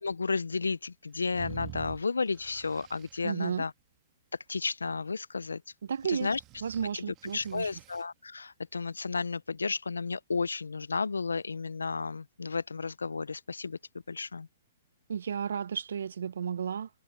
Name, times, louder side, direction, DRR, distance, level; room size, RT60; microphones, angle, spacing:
voice 1, 0.0-3.7 4.5-5.6 6.1-6.4 6.9-7.0 7.3-13.8 14.1-14.5, left 4 dB, 90° left, 0.6 m, -32 dB
sound 1, 1.3-3.2 6.0-8.0, right 19 dB, 30° right, 2.4 m, -47 dB
voice 2, 3.2-3.6 5.9-6.3 6.6-7.7 15.1-16.9, right 7 dB, 75° right, 0.9 m, -33 dB
hypercardioid pair, 125°, 0 cm